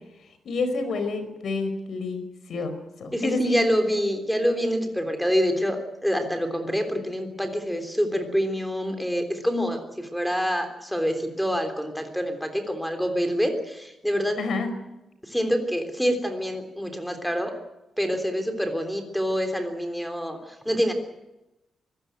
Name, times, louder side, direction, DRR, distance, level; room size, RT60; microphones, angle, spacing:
voice 1, 0.4-2.2 2.5-3.6 14.4-14.7, left 3 dB, 60° left, 9 dB, 4.8 m, -29 dB
voice 2, 3.1-14.4 15.3-17.5 18.0-20.4 20.7-20.9, equal, ahead, 6 dB, 3.4 m, -26 dB
24.5 x 16.0 x 9.2 m, 0.95 s
wide cardioid pair, 150°, 0 cm